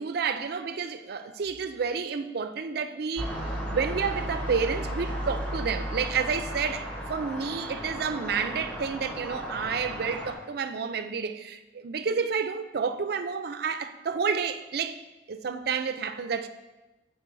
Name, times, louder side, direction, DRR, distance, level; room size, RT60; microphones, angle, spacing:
voice 1, 0.0-15.0 15.3-16.5, right 5 dB, 60° right, 0.4 m, -30 dB
sound 1, 3.2-10.3, equal, 10° left, 0.9 m, -34 dB
6.8 x 4.4 x 4.6 m
head